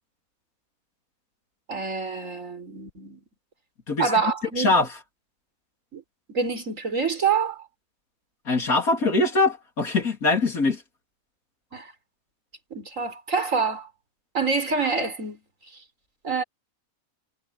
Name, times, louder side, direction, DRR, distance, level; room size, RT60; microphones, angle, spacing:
voice 1, 1.7-3.2 4.0-4.7 5.9-6.0 6.3-7.6 11.7-11.9 12.7-13.9 14.3-15.4 16.2-16.4, right 5 dB, 65° right, 4.6 m, -26 dB
voice 2, 4.6-4.9 8.5-10.8, left 3 dB, 90° left, 3.8 m, -22 dB
omnidirectional pair, 1.5 m